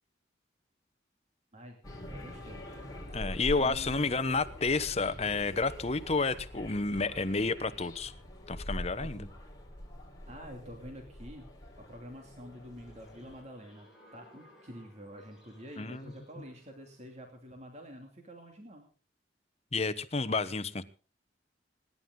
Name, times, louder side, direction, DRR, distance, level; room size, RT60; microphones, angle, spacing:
sound 1, 1.8-13.4, equal, 20° left, 4.2 m, -44 dB
voice 1, 2.1-2.7 3.6-4.1 9.0-9.3 10.3-11.5 11.8-18.9, equal, 35° right, 3 dB, 2.7 m, -48 dB
voice 2, 3.1-8.1 8.5-9.2 15.8-16.1 19.7-20.8, left 3 dB, 35° left, 13 dB, 1.0 m, -30 dB
sound 2, 12.0-17.3, left 1 dB, ahead, 7.8 m, -60 dB
26.5 x 11.0 x 3.8 m, 0.37 s
head